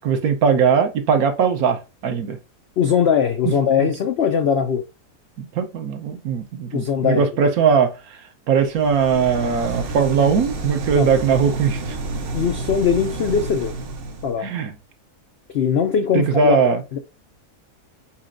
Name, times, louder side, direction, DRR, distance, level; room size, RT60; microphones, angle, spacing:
voice 1, 0.0-2.4 3.8-3.9 5.4-7.9 8.5-12.0 14.4-14.7 16.1-16.8, right 6 dB, 70° right, 1.2 m, -19 dB
voice 2, 2.8-4.8 6.7-7.3 11.0-11.1 12.3-13.7 14.2-14.5 15.5-16.6 16.9-17.0, left 7 dB, 90° left, 0.5 m, -20 dB
sound 1, 8.6-14.4, right 2 dB, 55° right, 0.7 m, -30 dB
4.8 x 4.3 x 2.5 m
omnidirectional pair, 1.7 m